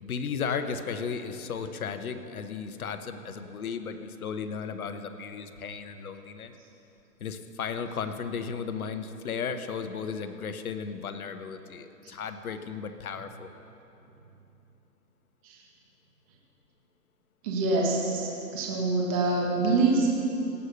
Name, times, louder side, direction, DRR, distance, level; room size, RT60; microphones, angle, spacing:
voice 1, 0.0-6.5 7.2-13.5, left 6 dB, 60° left, 9 dB, 1.0 m, -35 dB
voice 2, 17.4-20.1, right 3 dB, 20° right, -2 dB, 1.3 m, -25 dB
17.0 x 6.6 x 6.8 m, 3.0 s
hypercardioid pair, 160°, 49 cm